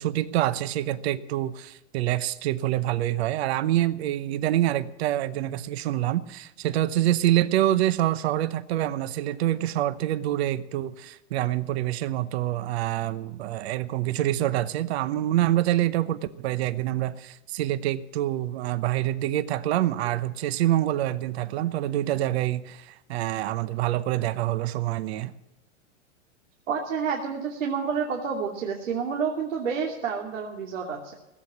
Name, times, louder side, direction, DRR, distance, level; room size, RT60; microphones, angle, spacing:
voice 1, 0.0-25.3, right 13 dB, 55° right, 15 dB, 0.9 m, -26 dB
voice 2, 26.7-31.1, right 6 dB, 85° right, -1 dB, 2.8 m, -29 dB
17.5 x 8.1 x 8.5 m, 0.96 s
supercardioid pair, 145°, 37 cm